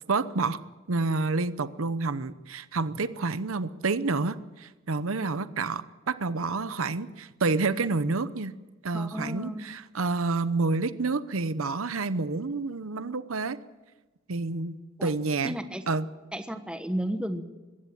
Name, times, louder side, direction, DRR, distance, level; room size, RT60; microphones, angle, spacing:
voice 1, 0.1-0.6 0.9-8.5 8.8-13.6 14.3-15.5 15.9-16.1, right 3 dB, 80° right, 13 dB, 0.9 m, -29 dB
voice 2, 8.9-9.6 15.0-15.1 15.4-15.8 16.3-17.4, equal, 5° right, 8 dB, 1.2 m, -33 dB
21.0 x 17.0 x 8.8 m, 1.2 s
head